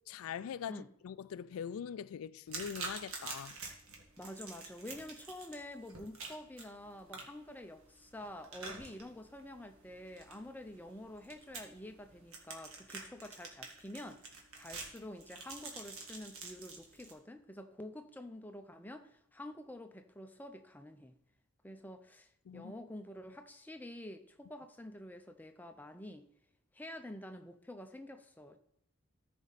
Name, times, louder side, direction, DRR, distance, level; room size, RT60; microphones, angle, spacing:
voice 1, 0.1-3.6 22.5-22.7, left 8 dB, 75° left, 0.3 m, -42 dB
sound 1, 2.5-17.1, right 3 dB, 75° right, 1.8 m, -48 dB
voice 2, 4.2-21.1 21.6-26.3 26.7-28.6, left 1 dB, 10° left, 0.5 m, -48 dB
14.0 x 5.1 x 4.1 m
head